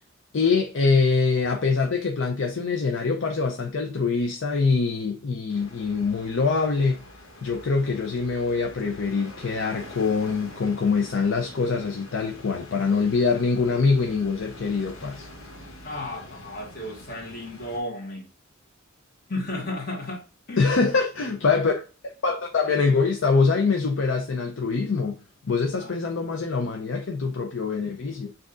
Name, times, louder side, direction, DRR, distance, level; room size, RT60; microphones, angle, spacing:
voice 1, 0.3-7.0 7.4-15.3 20.6-21.7 22.0-25.2 25.5-28.3, left 4 dB, 65° left, 0.6 m, -24 dB
sound 1, 5.5-17.8, left 1 dB, 85° left, 1.6 m, -45 dB
voice 2, 15.8-18.2 19.3-20.7 25.8-25.9, left 1 dB, 50° left, 1.7 m, -34 dB
6.2 x 2.7 x 2.4 m
head